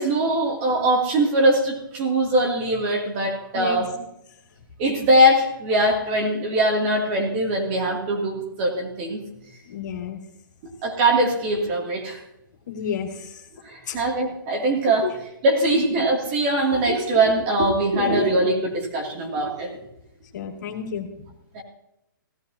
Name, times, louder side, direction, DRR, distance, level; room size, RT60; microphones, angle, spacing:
voice 1, 0.0-4.0 4.8-9.2 10.8-12.2 13.6-15.1 15.4-19.8 21.5-21.6, right 1 dB, 35° right, 0 dB, 2.8 m, -21 dB
voice 2, 9.7-10.2 12.7-13.4 13.9-14.0 15.0-15.1 15.6-15.8 17.9-18.2 20.3-21.1, left 7 dB, 55° left, 1 dB, 2.6 m, -30 dB
16.5 x 13.5 x 2.9 m, 0.82 s
hypercardioid pair, 150°, 11 cm